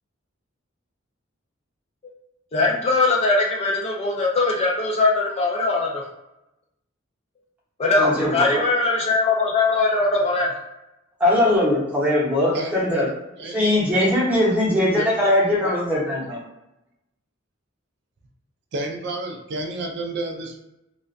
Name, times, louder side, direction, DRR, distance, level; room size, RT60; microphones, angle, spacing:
voice 1, 2.5-6.0 7.8-10.5, left 3 dB, 30° left, -1 dB, 0.4 m, -21 dB
voice 2, 8.0-8.6 11.2-13.1 13.5-16.4, left 1 dB, 5° right, -6 dB, 0.8 m, -20 dB
voice 3, 12.5-13.1 13.4-13.9 15.0-15.1 15.6-16.0 18.7-20.6, right 2 dB, 60° right, 2 dB, 0.4 m, -31 dB
2.3 x 2.2 x 2.5 m, 0.91 s
head